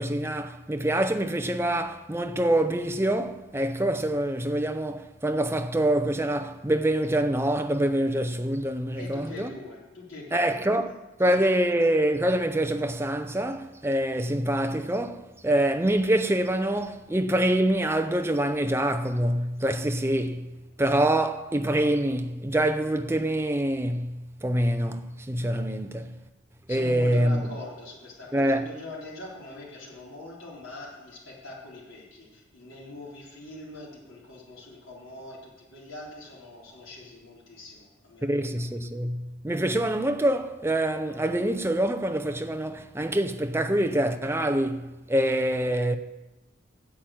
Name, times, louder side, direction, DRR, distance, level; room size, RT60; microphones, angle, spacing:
voice 1, 0.0-9.5 10.3-10.9 11.2-20.5 20.8-26.2 26.7-27.4 28.3-28.7 38.2-46.0, right 1 dB, 10° right, 0.6 m, -25 dB
voice 2, 8.9-10.8 11.2-11.3 26.7-38.6, left 2 dB, 90° left, 3.9 m, -43 dB
8.6 x 7.7 x 8.8 m
head